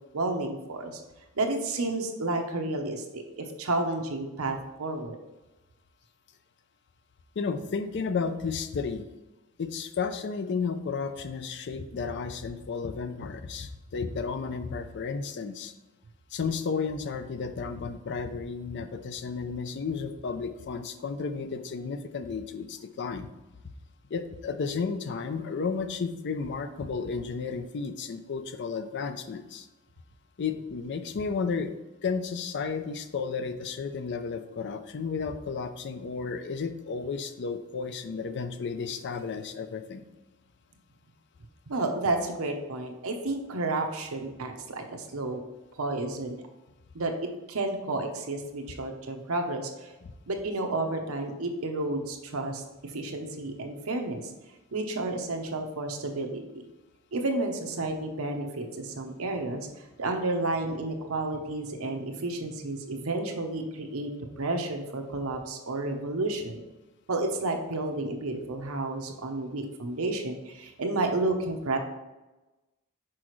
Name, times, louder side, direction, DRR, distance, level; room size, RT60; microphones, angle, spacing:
voice 1, 0.1-1.0 1.3-5.2 41.7-45.4 45.8-46.4 46.9-47.1 47.5-49.9 50.3-54.3 54.7-56.6 57.1-64.1 64.4-66.6 67.1-71.8, right 2 dB, 70° right, 4 dB, 0.8 m, -31 dB
voice 2, 7.4-9.0 9.6-15.7 16.3-23.3 24.1-29.7 30.4-31.7 32.0-40.1, left 5 dB, 55° left, 9 dB, 0.4 m, -33 dB
6.1 x 4.9 x 3.1 m, 1.1 s
head